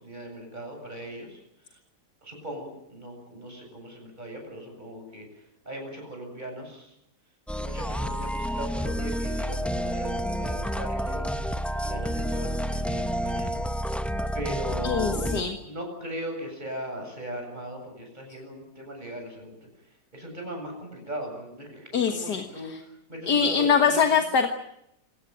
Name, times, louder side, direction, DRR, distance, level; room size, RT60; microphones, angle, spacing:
voice 1, 0.0-1.4 2.2-6.9 7.5-11.3 11.8-13.6 14.3-19.6 20.1-22.7 23.1-24.0, right 1 dB, 25° right, 3 dB, 7.9 m, -38 dB
sound 1, 7.5-15.4, equal, ahead, 0.7 m, -29 dB
voice 2, 14.8-15.6 21.9-22.8 23.3-24.5, left 6 dB, 75° left, 5 dB, 2.2 m, -23 dB
27.0 x 17.5 x 9.2 m, 0.79 s
omnidirectional pair, 1.8 m